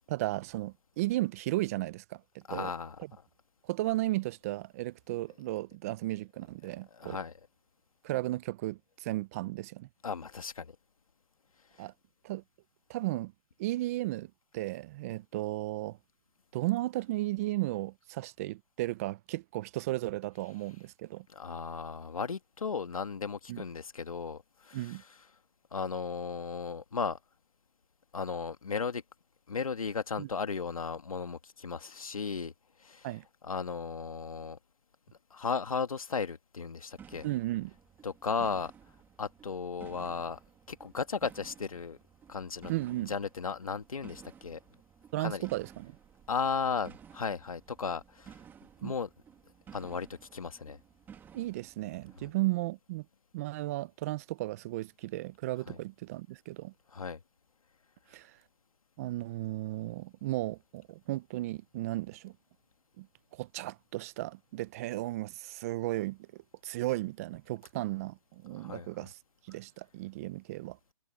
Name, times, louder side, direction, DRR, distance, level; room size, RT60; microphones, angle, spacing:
voice 1, 0.1-2.7 3.6-7.2 8.0-9.9 11.8-11.9 12.2-12.4 12.9-13.3 13.6-16.0 16.5-21.3 23.5-23.6 24.7-25.0 30.2-30.3 33.0-33.2 37.2-37.7 42.7-43.1 45.1-45.9 48.8-48.9 51.3-53.0 53.3-56.7 58.1-58.4 59.0-62.3 63.0-63.1 63.3-69.2 69.5-70.8, right 17 dB, 25° right, 0.6 m, -35 dB
voice 2, 2.5-3.0 7.0-7.3 10.0-10.7 21.3-25.0 25.7-27.2 28.1-29.0 29.5-32.5 32.8-33.1 33.4-34.6 35.3-37.3 38.0-38.7 39.2-40.4 40.7-42.0 42.3-42.7 43.1-44.6 45.2-45.4 46.3-48.4 48.8-49.1 49.7-50.1 50.3-50.8 52.2-52.3 55.7-55.8 56.9-57.2 68.5-68.9, left 5 dB, 90° left, 1.9 m, -35 dB
sound 1, 37.0-52.3, right 8 dB, 10° right, 2.2 m, -55 dB
hypercardioid pair, 150°, 17 cm